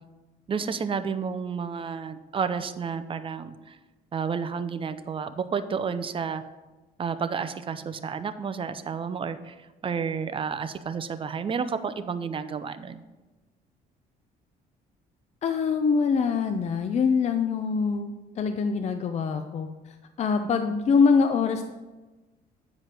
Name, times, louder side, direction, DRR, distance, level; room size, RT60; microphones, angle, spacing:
voice 1, 0.5-3.8 4.1-6.4 7.0-13.0, right 6 dB, 30° right, 11 dB, 0.6 m, -31 dB
voice 2, 15.4-19.7 20.2-21.7, left 5 dB, 40° left, 7 dB, 0.5 m, -24 dB
9.2 x 5.0 x 5.7 m, 1.2 s
cardioid pair, 110°, 17 cm